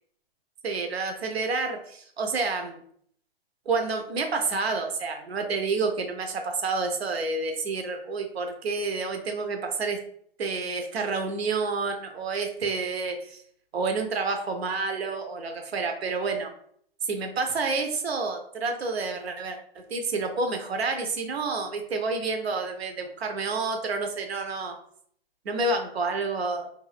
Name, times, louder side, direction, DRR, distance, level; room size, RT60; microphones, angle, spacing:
voice 1, 0.6-2.8 3.7-10.0 10.4-13.4 13.7-16.5 17.0-24.8 25.4-26.7, right 4 dB, 85° right, 5 dB, 0.6 m, -29 dB
2.5 x 2.3 x 3.2 m, 0.62 s
hypercardioid pair, 115°, 30 cm